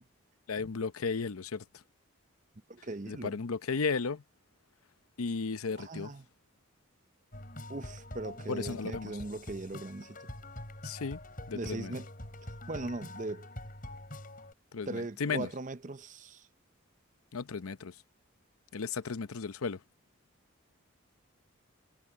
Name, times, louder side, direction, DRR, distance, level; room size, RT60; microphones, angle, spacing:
voice 1, 0.5-1.8 3.1-4.2 5.2-6.1 8.5-9.2 10.8-11.2 11.5-11.9 14.7-15.5 17.3-17.9 18.7-19.8, left 4 dB, 90° left, 0.7 m, -34 dB
voice 2, 2.7-3.4 5.8-6.2 7.7-10.3 11.5-12.1 12.7-13.5 14.9-16.5, right 2 dB, 35° right, 0.7 m, -39 dB
sound 1, 7.3-14.5, left 1 dB, 40° left, 6.8 m, -45 dB
head